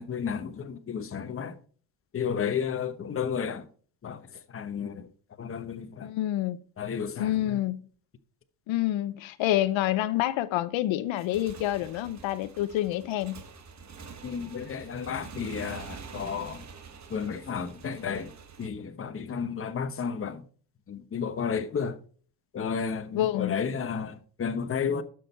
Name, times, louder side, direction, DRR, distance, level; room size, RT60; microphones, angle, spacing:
voice 1, 0.0-1.5 2.1-3.7 4.0-4.2 4.5-5.1 5.4-6.1 6.8-7.6 14.2-16.6 17.1-18.3 18.6-20.4 20.9-22.0 22.5-25.0, left 6 dB, 30° left, 1.0 m, -32 dB
voice 2, 6.0-6.6 7.2-7.8 8.7-13.4 23.1-23.5, left 14 dB, 75° left, 0.8 m, -27 dB
Motorcycle / Engine, 11.1-18.7, right 5 dB, 35° right, 1.4 m, -46 dB
12.5 x 6.3 x 4.4 m
cardioid pair, 125°, 46 cm